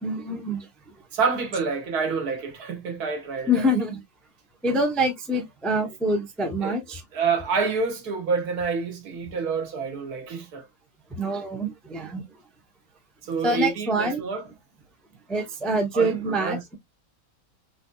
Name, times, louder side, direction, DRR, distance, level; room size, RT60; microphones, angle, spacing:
voice 1, 0.0-0.7 3.5-4.0 4.6-7.0 11.1-12.2 13.4-14.2 15.3-16.7, right 1 dB, ahead, 0.4 m, -25 dB
voice 2, 1.1-3.7 6.6-6.7 7.1-10.6 13.2-14.4 15.9-16.8, right 5 dB, 85° right, 1.6 m, -28 dB
4.1 x 2.7 x 2.3 m
omnidirectional pair, 1.6 m